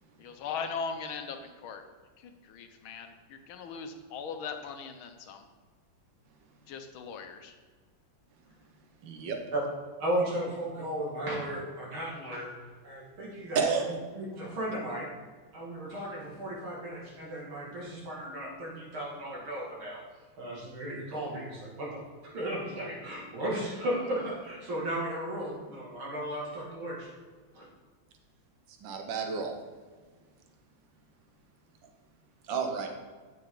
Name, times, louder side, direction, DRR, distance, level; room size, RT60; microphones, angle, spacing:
voice 1, 0.2-1.8 2.2-5.4 6.7-7.5, left 5 dB, 90° left, 6 dB, 1.7 m, -39 dB
voice 2, 9.0-9.4 13.5-14.0 28.8-29.5 32.4-32.9, right 5 dB, 70° right, 4 dB, 1.7 m, -30 dB
voice 3, 10.0-12.5 12.8-13.6 14.1-15.1 15.5-20.0 20.4-27.1 27.5-27.7, right 1 dB, 85° right, -4 dB, 3.0 m, -35 dB
9.4 x 6.9 x 3.7 m, 1.5 s
omnidirectional pair, 2.2 m